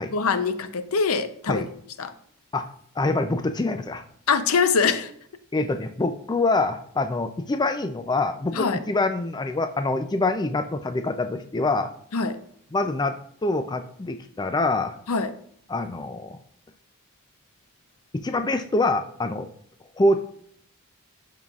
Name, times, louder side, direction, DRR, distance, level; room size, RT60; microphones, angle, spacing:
voice 1, 0.1-1.6 2.0-2.1 4.3-5.1 8.6-8.8 12.1-12.4 15.1-15.3, left 5 dB, 80° left, 0.6 m, -23 dB
voice 2, 3.0-4.0 5.5-11.9 12.7-14.9 15.7-16.4 18.1-19.5 20.0-20.2, left 2 dB, 20° left, 0.4 m, -25 dB
12.0 x 5.6 x 2.4 m
head